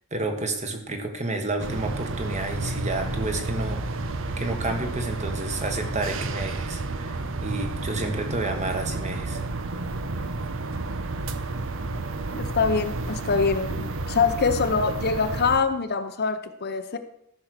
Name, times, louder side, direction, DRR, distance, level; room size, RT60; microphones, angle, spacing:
voice 1, 0.0-9.4, right 2 dB, 35° right, 5 dB, 1.7 m, -30 dB
sound 1, 1.6-15.6, right 2 dB, 65° right, 0.9 m, -31 dB
voice 2, 12.3-17.0, left 5 dB, 50° left, 8 dB, 0.8 m, -24 dB
13.5 x 6.4 x 6.6 m, 0.74 s
head